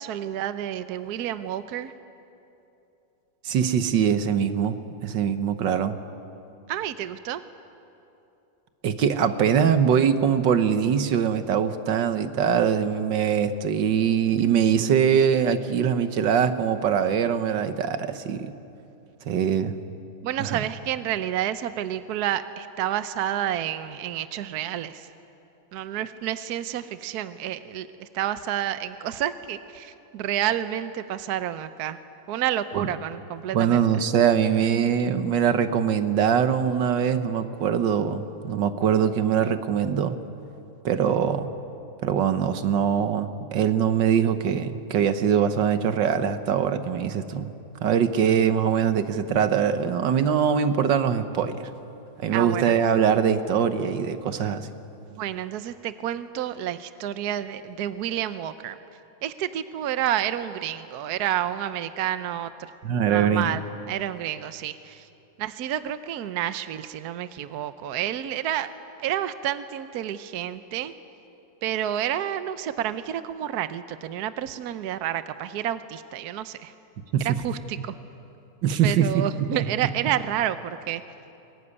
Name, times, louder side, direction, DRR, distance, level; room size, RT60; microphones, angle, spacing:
voice 1, 0.0-1.9 6.7-7.4 20.2-25.1 25.7-32.0 32.3-34.0 52.3-52.7 55.2-58.8 59.2-62.5 63.1-65.1 65.4-68.7 69.0-70.9 71.6-76.7 77.2-78.0 78.8-81.0, right 11 dB, 65° right, 12 dB, 1.2 m, -29 dB
voice 2, 3.4-4.8 5.0-6.0 8.8-18.5 19.3-19.7 20.4-20.6 32.7-32.9 33.5-40.2 40.9-41.5 42.0-47.5 47.8-51.7 52.2-54.7 62.8-63.5 77.1-77.4 78.6-79.2, right 8 dB, 85° right, 10 dB, 1.7 m, -22 dB
23.0 x 20.5 x 9.8 m, 2.8 s
omnidirectional pair, 1.9 m